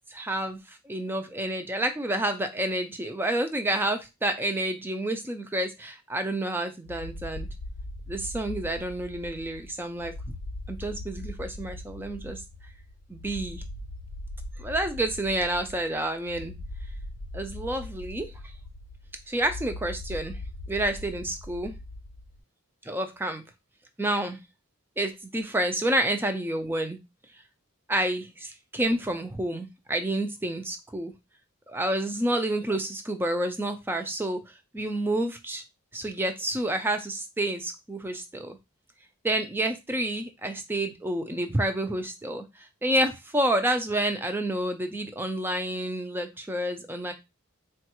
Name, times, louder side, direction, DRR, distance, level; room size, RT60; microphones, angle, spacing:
voice 1, 0.1-7.5 8.1-10.1 10.7-12.4 13.1-13.6 14.6-16.5 17.3-18.3 19.3-20.4 20.7-21.8 22.8-23.4 24.0-24.4 25.0-27.0 27.9-31.1 31.7-34.4 34.7-35.6 35.9-38.6 39.2-47.1, right 1 dB, 10° right, 7 dB, 0.3 m, -29 dB
sound 1, 6.9-22.4, left 1 dB, 55° left, 0.4 m, -40 dB
3.9 x 2.2 x 2.9 m, 0.22 s
head